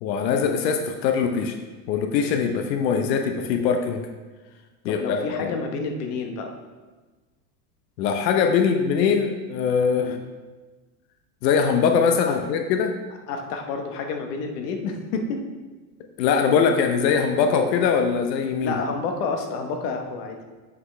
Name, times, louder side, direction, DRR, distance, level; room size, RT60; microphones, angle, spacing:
voice 1, 0.0-1.5 1.9-4.1 4.8-5.6 8.0-10.2 11.4-12.9 16.2-18.7, left 6 dB, 90° left, 5 dB, 0.9 m, -22 dB
voice 2, 4.8-6.5 10.0-10.1 12.2-12.4 13.3-15.4 18.6-20.4, left 4 dB, 65° left, 4 dB, 1.3 m, -29 dB
7.9 x 5.9 x 3.2 m, 1.3 s
supercardioid pair, 155°, 49 cm